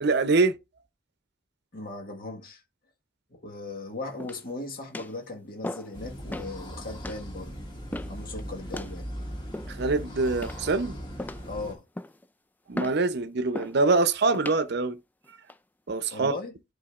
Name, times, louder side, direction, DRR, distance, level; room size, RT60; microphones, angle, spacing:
voice 1, 0.0-0.6 9.7-11.0 12.7-15.0 15.9-16.3, right 3 dB, 60° right, 0.7 m, -24 dB
voice 2, 1.7-2.6 3.3-7.5 8.1-9.1 11.5-11.8 16.1-16.5, left 2 dB, 50° left, 1.6 m, -38 dB
sound 1, 4.2-4.6 4.9-5.2 5.6-6.0 6.3-6.6 7.0-7.2 7.9-8.2 8.7-9.0 9.5-10.0 10.4-10.8 11.2-11.5 12.0-12.3 12.8-13.0 13.5-13.8 14.3-14.6 15.2-15.6, left 1 dB, 10° left, 0.3 m, -37 dB
sound 2, 5.9-11.7, equal, 25° left, 1.9 m, -39 dB
11.5 x 3.9 x 2.4 m
head